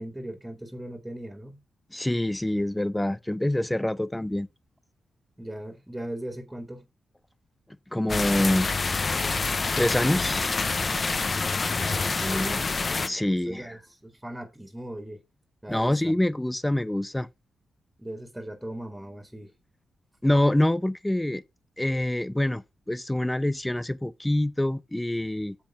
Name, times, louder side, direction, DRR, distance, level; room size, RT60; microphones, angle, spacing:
voice 1, 0.0-1.6 5.4-6.9 11.9-15.2 15.6-16.1 18.0-19.5, right 1 dB, 10° right, 2.0 m, -38 dB
voice 2, 1.9-4.5 7.9-8.7 9.1-9.3 9.7-10.5 13.1-13.8 15.7-17.3 20.2-21.4 21.8-25.6, left 1 dB, 10° left, 0.5 m, -26 dB
sound 1, 8.1-13.1, left 4 dB, 35° left, 0.9 m, -27 dB
8.7 x 7.6 x 3.7 m
cardioid pair, 115°, 0 cm